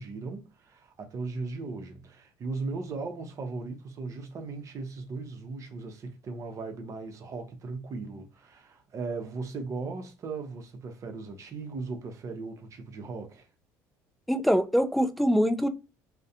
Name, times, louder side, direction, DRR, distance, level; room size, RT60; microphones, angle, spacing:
voice 1, 0.0-13.5, right 3 dB, 45° right, 0.7 m, -37 dB
voice 2, 14.3-15.7, equal, ahead, 0.4 m, -24 dB
2.4 x 2.1 x 2.7 m
supercardioid pair, 90°, 8 cm